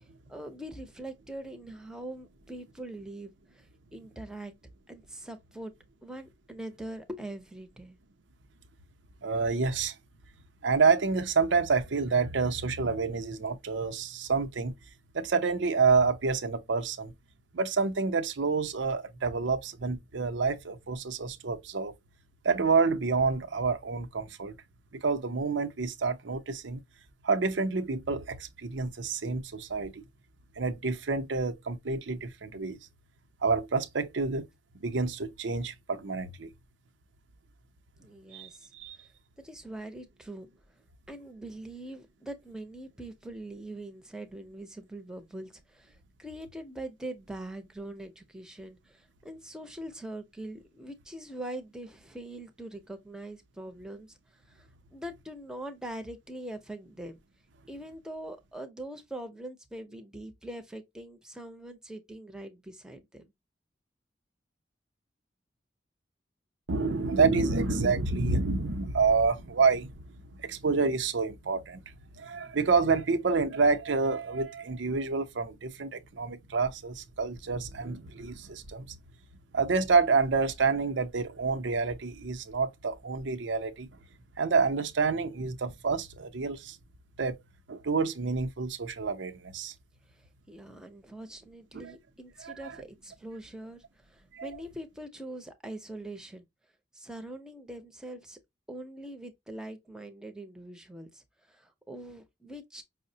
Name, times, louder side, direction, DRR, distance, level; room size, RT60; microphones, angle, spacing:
voice 1, 0.0-3.7 3.9-4.5 4.9-5.7 6.0-8.0 38.0-38.7 39.4-40.5 41.1-54.1 54.5-57.2 57.7-63.2 90.5-96.5 96.9-98.4 98.7-102.8, right 1 dB, 5° right, 0.7 m, -43 dB
voice 2, 9.2-9.9 10.6-14.7 15.1-17.1 17.5-21.9 22.4-24.6 24.9-26.8 27.2-30.0 30.6-32.8 33.4-34.5 34.8-36.5 38.3-39.0 66.7-69.9 70.4-71.8 72.2-78.9 79.5-83.9 84.4-86.8 87.2-87.4 87.7-89.7 91.7-91.9 92.4-92.7 94.3-94.5, right 4 dB, 85° right, 0.7 m, -28 dB
5.6 x 2.1 x 2.7 m
head